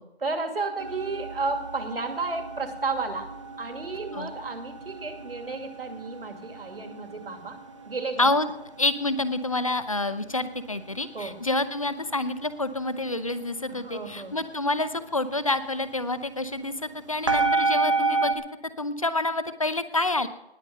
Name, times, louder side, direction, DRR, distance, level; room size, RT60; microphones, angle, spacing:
voice 1, 0.2-3.3 3.6-7.6 7.8-8.3 11.1-11.4 13.7-14.4, right 3 dB, 65° right, 6 dB, 2.5 m, -32 dB
sound 1, 0.8-18.3, right 3 dB, 30° right, 1.1 m, -33 dB
voice 2, 8.2-8.5 8.8-18.4 18.8-20.3, left 2 dB, 35° left, 13 dB, 0.8 m, -28 dB
19.5 x 7.1 x 6.6 m, 0.87 s
figure-of-eight pair, 175°, 31 cm